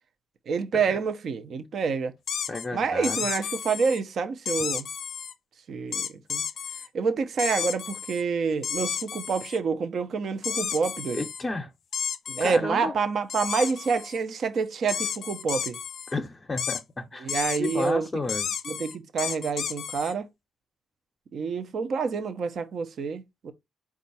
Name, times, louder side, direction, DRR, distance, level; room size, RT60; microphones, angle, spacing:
voice 1, 0.5-2.1 2.7-4.9 5.7-6.4 6.9-11.3 12.3-15.8 17.2-18.1 18.6-20.3 21.3-23.5, right 5 dB, 60° right, 0.6 m, -28 dB
sound 1, 2.3-2.7 3.0-4.0 4.5-5.3 5.9-6.9 7.4-8.2 8.6-9.6 10.4-11.4 11.9-12.6 13.3-14.2 14.9-16.1 16.6-16.8 17.3-17.9 18.3-20.1, left 7 dB, 60° left, 0.5 m, -32 dB
voice 2, 2.5-3.2 11.1-11.7 12.4-12.9 16.1-17.3 17.6-18.5, left 2 dB, 25° left, 0.7 m, -32 dB
4.4 x 2.4 x 4.0 m
cardioid pair, 90°, 0 cm